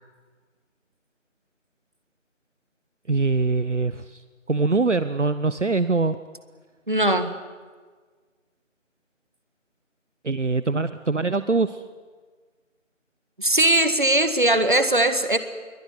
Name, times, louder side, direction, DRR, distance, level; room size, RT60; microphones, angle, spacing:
voice 1, 3.1-4.2 4.5-6.2 10.2-11.8, right 3 dB, 65° right, 13 dB, 1.0 m, -23 dB
voice 2, 6.9-7.3 13.4-15.4, right 1 dB, 40° right, 10 dB, 1.9 m, -20 dB
23.0 x 18.5 x 10.0 m, 1.5 s
figure-of-eight pair, 180°, 38 cm